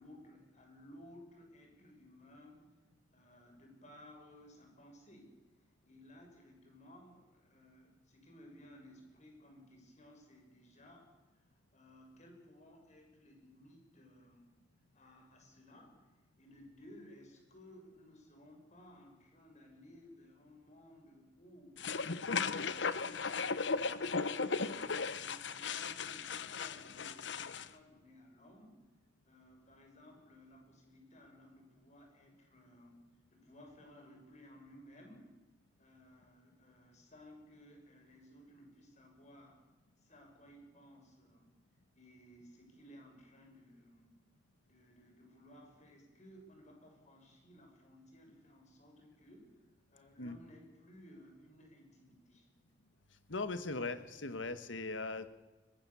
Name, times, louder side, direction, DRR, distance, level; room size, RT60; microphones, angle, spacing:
voice 1, 0.0-2.7 3.1-11.1 11.3-11.4 11.7-14.5 14.9-16.1 16.4-21.8 22.3-24.0 24.6-28.8 29.2-33.0 33.3-35.4 35.8-39.6 40.0-41.6 41.9-44.1 44.6-49.5 49.9-52.5, left 1 dB, 40° left, 2 dB, 6.5 m, -58 dB
sound 1, 21.8-27.7, left 4 dB, 70° left, 1.0 m, -36 dB
voice 2, 53.3-55.3, left 3 dB, 85° left, 11 dB, 1.7 m, -39 dB
22.5 x 20.0 x 7.2 m, 1.2 s
head